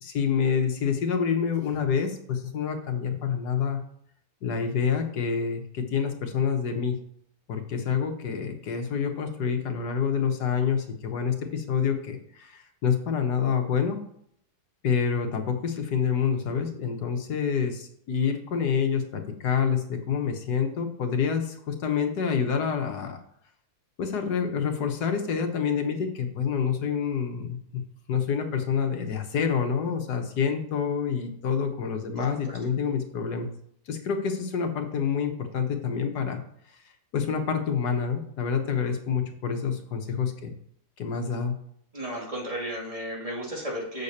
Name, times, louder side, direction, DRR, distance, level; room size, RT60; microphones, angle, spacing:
voice 1, 0.0-3.8 4.4-7.0 7.5-14.0 14.8-23.2 24.0-27.8 28.1-33.5 33.9-36.4 37.1-40.5 41.0-41.5, left 6 dB, 80° left, 5 dB, 1.7 m, -27 dB
voice 2, 32.2-32.5 41.9-44.0, equal, 20° right, -3 dB, 2.3 m, -34 dB
7.6 x 6.7 x 4.2 m, 0.68 s
omnidirectional pair, 1.7 m